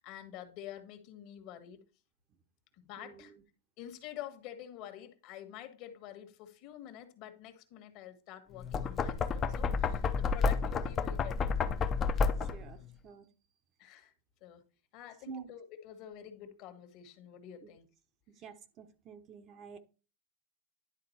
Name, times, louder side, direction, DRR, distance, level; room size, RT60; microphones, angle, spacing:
voice 1, 0.0-1.8 2.7-3.3 3.8-11.8 13.8-14.1 14.4-14.6 14.9-17.9, left 11 dB, 45° left, 1.4 m, -48 dB
voice 2, 3.0-3.4 12.4-13.3 15.3-15.5 17.6-17.7 18.3-19.8, right 6 dB, 35° right, 0.9 m, -49 dB
Knock, 8.6-12.7, left 5 dB, 25° left, 0.7 m, -30 dB
10.5 x 3.7 x 4.3 m
supercardioid pair, 135°, 0 cm